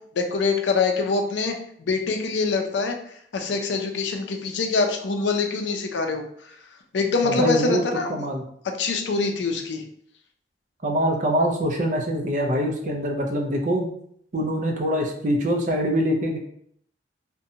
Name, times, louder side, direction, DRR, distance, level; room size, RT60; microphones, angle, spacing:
voice 1, 0.2-1.5 1.8-6.6 6.9-8.3 8.6-9.9, left 4 dB, 70° left, 4 dB, 0.4 m, -25 dB
voice 2, 7.2-7.8 8.1-8.4 10.8-13.9 14.3-16.4, equal, 40° right, 2 dB, 0.4 m, -24 dB
2.6 x 2.1 x 2.7 m, 0.65 s
head